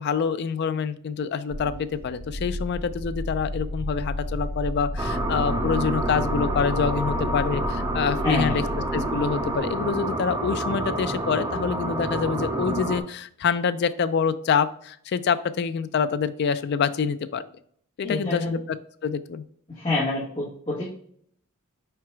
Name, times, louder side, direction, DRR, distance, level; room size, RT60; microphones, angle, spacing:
voice 1, 0.0-8.6 8.9-17.4 18.0-18.6 19.0-19.4, left 6 dB, 50° left, 13 dB, 0.3 m, -26 dB
sound 1, 1.5-9.7, left 1 dB, 70° right, 0.6 m, -32 dB
sound 2, 5.0-13.0, right 1 dB, 15° right, 0.4 m, -28 dB
voice 2, 8.2-8.7 18.0-18.6 19.7-20.9, left 2 dB, 25° left, -9 dB, 1.5 m, -27 dB
4.8 x 4.5 x 2.2 m, 0.64 s
head